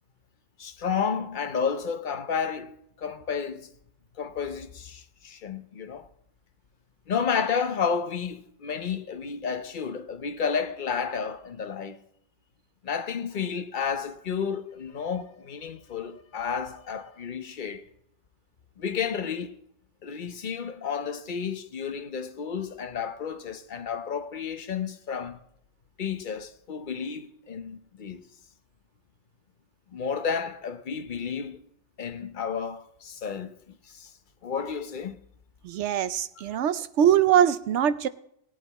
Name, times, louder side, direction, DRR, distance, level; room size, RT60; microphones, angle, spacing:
voice 1, 0.6-3.7 4.1-6.1 7.1-12.0 12.8-17.9 18.8-19.6 20.0-25.4 26.0-28.2 29.9-31.7 32.0-34.1 34.4-35.2 36.4-36.5, left 6 dB, 45° left, 0.8 m, -31 dB
voice 2, 35.6-38.1, right 9 dB, 70° right, 0.9 m, -22 dB
18.0 x 8.5 x 4.2 m
omnidirectional pair, 1.3 m